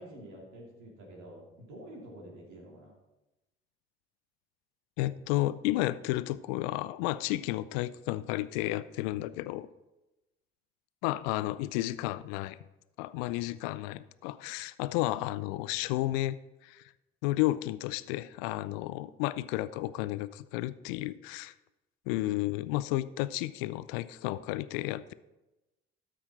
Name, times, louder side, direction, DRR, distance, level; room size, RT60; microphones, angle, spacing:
voice 1, 0.0-3.0, right 1 dB, 70° right, -1 dB, 2.8 m, -48 dB
voice 2, 5.0-9.7 11.0-12.6 13.0-16.4 16.6-16.9 17.2-21.5 22.1-25.1, left 16 dB, 70° left, 16 dB, 0.5 m, -32 dB
13.0 x 5.7 x 4.2 m, 1.0 s
figure-of-eight pair, 45°, 31 cm